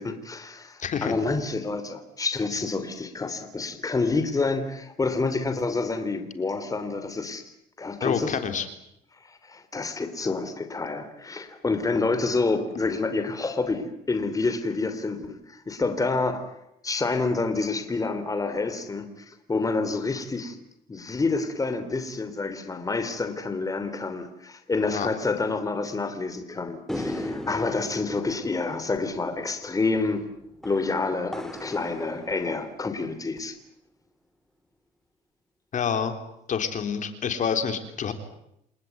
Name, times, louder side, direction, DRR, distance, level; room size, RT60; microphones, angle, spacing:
voice 1, 0.0-7.4 7.8-8.4 9.2-16.5 16.8-20.6 20.9-30.3 30.6-33.6, left 3 dB, 20° left, 9 dB, 3.3 m, -28 dB
voice 2, 0.8-1.1 8.0-8.7 24.9-25.1 35.7-36.1 36.5-38.1, left 7 dB, 50° left, 8 dB, 3.6 m, -27 dB
sound 1, 26.9-33.4, left 1 dB, ahead, 2.7 m, -38 dB
28.5 x 19.5 x 9.5 m, 0.79 s
cardioid pair, 110°, 17 cm